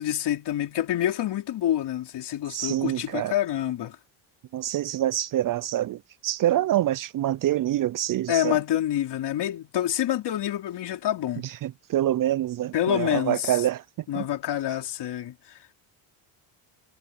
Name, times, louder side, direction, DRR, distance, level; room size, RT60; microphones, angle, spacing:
voice 1, 0.0-4.0 8.3-11.5 12.7-13.6 14.1-15.7, left 11 dB, 55° left, 3.9 m, -27 dB
voice 2, 2.5-3.3 4.5-8.6 11.4-13.8 14.1-14.3, right 13 dB, 45° right, 0.5 m, -26 dB
cardioid pair, 100°, 48 cm